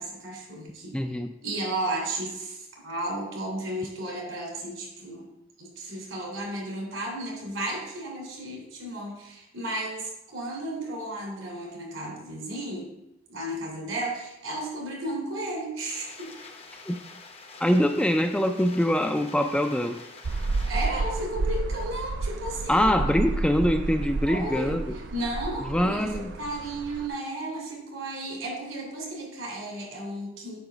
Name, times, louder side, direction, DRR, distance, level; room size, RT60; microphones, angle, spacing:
voice 1, 0.0-1.0 1.4-5.3 5.6-12.9 13.3-16.3 20.6-22.9 24.2-24.8 25.1-30.6, right 1 dB, 85° right, -2 dB, 3.0 m, -34 dB
voice 2, 0.9-1.3 16.9-17.0 17.6-20.0 22.7-25.0 25.7-26.3, equal, 5° left, 6 dB, 0.3 m, -24 dB
sound 1, 15.9-20.9, left 3 dB, 30° left, 0.7 m, -46 dB
sound 2, 20.2-27.1, right 3 dB, 60° right, 0.4 m, -31 dB
8.8 x 3.2 x 6.0 m, 0.91 s
head